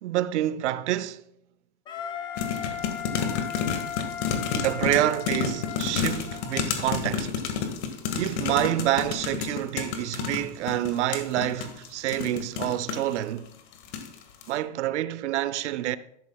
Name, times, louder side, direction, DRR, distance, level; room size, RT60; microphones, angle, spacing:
voice 1, 0.0-1.2 4.5-7.3 8.1-13.5 14.5-16.0, right 13 dB, 80° right, 0.7 m, -27 dB
Wind instrument woodwind instrument, 1.9-6.6, left 8 dB, 15° left, 0.4 m, -37 dB
sound 1, 2.4-13.2 13.7-14.1 14.4-14.5, left 6 dB, 70° left, 1.9 m, -30 dB
13.0 x 11.0 x 2.3 m
supercardioid pair, 150°, 34 cm